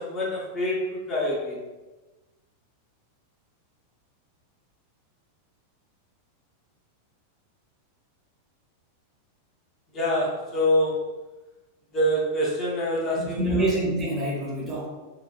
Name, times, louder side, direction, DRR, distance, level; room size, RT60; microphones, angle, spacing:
voice 1, 0.0-1.6 9.9-11.2 11.9-13.7, left 1 dB, 25° left, -5 dB, 0.7 m, -26 dB
voice 2, 13.0-14.9, right 1 dB, 25° right, -3 dB, 0.7 m, -27 dB
2.9 x 2.2 x 2.4 m, 1.1 s
figure-of-eight pair, 90°, 0 cm